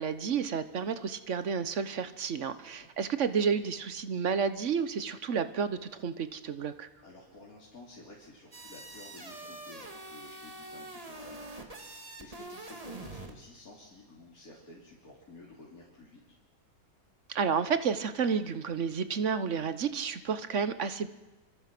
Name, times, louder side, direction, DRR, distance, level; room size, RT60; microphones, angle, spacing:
voice 1, 0.0-6.9 17.3-21.1, right 6 dB, 55° right, 11 dB, 1.3 m, -31 dB
voice 2, 2.6-2.9 7.0-16.2, left 2 dB, 70° left, -5 dB, 3.6 m, -52 dB
sound 1, 8.5-13.4, right 2 dB, 25° right, 2.2 m, -45 dB
26.0 x 25.0 x 6.1 m, 1.2 s
omnidirectional pair, 1.6 m